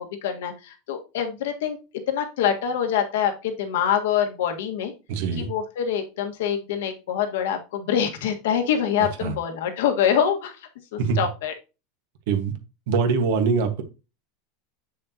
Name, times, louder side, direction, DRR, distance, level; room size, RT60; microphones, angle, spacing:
voice 1, 0.0-1.8 2.1-4.9 5.4-10.6 10.9-11.5, left 8 dB, 75° left, 5 dB, 1.6 m, -25 dB
voice 2, 5.1-5.5 9.2-9.3 11.0-11.2 12.3-12.5 12.9-13.8, right 5 dB, 65° right, 7 dB, 1.4 m, -23 dB
7.6 x 6.5 x 2.9 m, 0.30 s
supercardioid pair, 165°, 0 cm